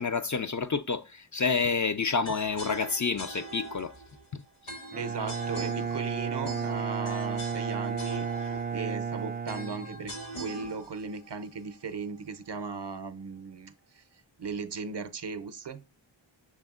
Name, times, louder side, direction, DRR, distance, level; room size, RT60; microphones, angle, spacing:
voice 1, 0.0-3.9 4.3-4.4, left 5 dB, 40° left, 0.4 m, -29 dB
sound 1, 2.2-12.3, right 1 dB, 80° left, 1.9 m, -43 dB
Bowed string instrument, 4.9-10.4, right 6 dB, 20° right, 0.4 m, -33 dB
voice 2, 5.0-10.1 10.4-14.0 14.4-15.8, right 5 dB, 55° right, 0.6 m, -37 dB
6.3 x 3.5 x 2.3 m
wide cardioid pair, 45°, 49 cm